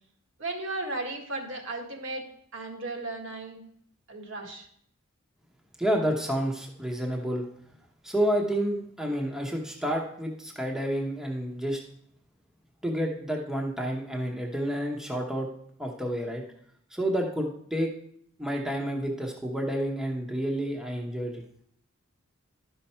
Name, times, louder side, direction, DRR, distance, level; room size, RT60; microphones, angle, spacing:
voice 1, 0.4-2.2 2.5-3.6 4.1-4.7, right 2 dB, 60° right, 2 dB, 1.7 m, -35 dB
voice 2, 5.8-7.5 8.0-11.8 12.8-15.5 15.8-16.4 16.9-17.9 18.4-21.4, equal, ahead, 0 dB, 1.0 m, -29 dB
11.5 x 5.6 x 4.4 m, 0.67 s
head